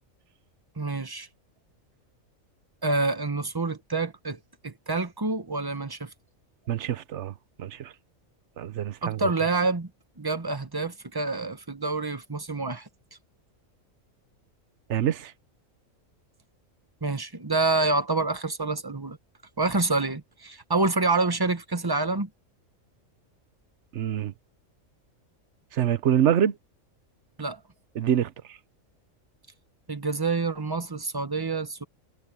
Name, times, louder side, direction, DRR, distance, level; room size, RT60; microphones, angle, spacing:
voice 1, 0.8-1.3 2.8-6.1 9.0-9.9 10.2-12.9 17.0-19.2 19.6-22.3 27.4-27.6 29.9-31.8, right 3 dB, 20° right, 1.1 m, -27 dB
voice 2, 6.7-7.9 8.6-9.2 14.9-15.3 23.9-24.3 25.7-26.6 28.0-28.6, right 10 dB, 60° right, 1.1 m, -26 dB
omnidirectional pair, 1.4 m